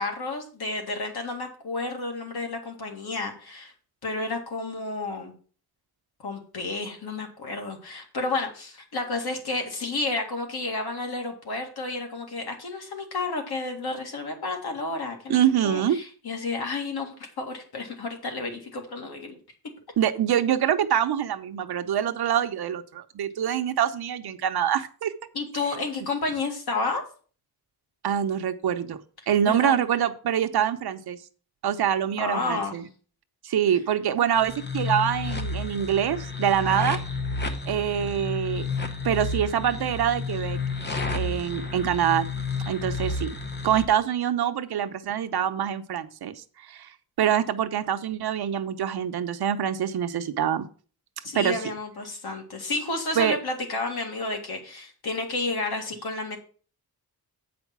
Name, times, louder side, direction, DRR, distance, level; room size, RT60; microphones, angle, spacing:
voice 1, 0.0-3.7 4.0-5.3 6.2-19.4 25.3-27.0 29.5-29.8 32.2-32.7 51.2-56.4, left 3 dB, 75° left, 2 dB, 2.2 m, -31 dB
voice 2, 15.3-16.0 20.0-25.1 28.0-29.0 29.3-31.2 31.6-32.9 33.4-37.0 37.7-38.6 39.0-40.6 41.1-42.3 42.7-43.3 43.6-46.9 47.2-50.7 51.3-51.6 53.2-53.4, right 9 dB, 75° right, 8 dB, 0.8 m, -25 dB
sound 1, 34.3-43.8, left 4 dB, 25° left, 0.9 m, -31 dB
8.0 x 5.2 x 5.9 m, 0.40 s
wide cardioid pair, 155°, 39 cm